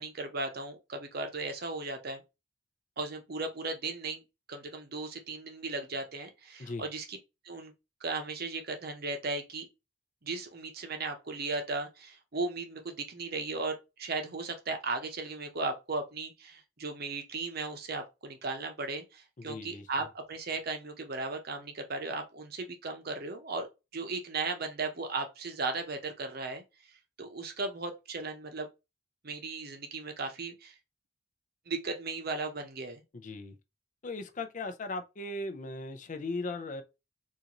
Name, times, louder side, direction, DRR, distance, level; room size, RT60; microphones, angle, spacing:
voice 1, 0.0-2.2 3.0-4.2 4.5-7.2 7.4-7.7 8.0-9.7 10.2-23.7 23.9-26.6 27.2-28.7 29.2-30.7 31.7-33.0, right 3 dB, 50° right, 0.7 m, -36 dB
voice 2, 19.4-19.9 33.1-33.5 34.0-36.8, left 2 dB, 40° left, 0.5 m, -38 dB
3.9 x 2.6 x 2.9 m
head